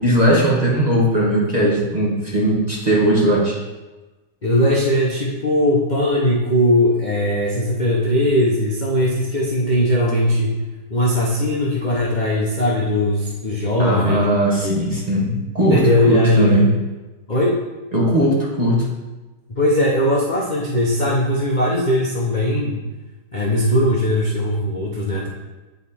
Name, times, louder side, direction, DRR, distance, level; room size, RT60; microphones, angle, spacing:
voice 1, 0.0-3.6 13.8-16.7 17.9-18.9, right 1 dB, 25° right, -4 dB, 1.2 m, -18 dB
voice 2, 4.4-10.6 10.9-14.3 14.6-15.0 15.7-16.6 17.3-17.5 19.5-22.8 23.3-25.3, left 1 dB, 35° left, -4 dB, 0.7 m, -19 dB
9.0 x 4.1 x 4.2 m, 1.2 s
omnidirectional pair, 1.9 m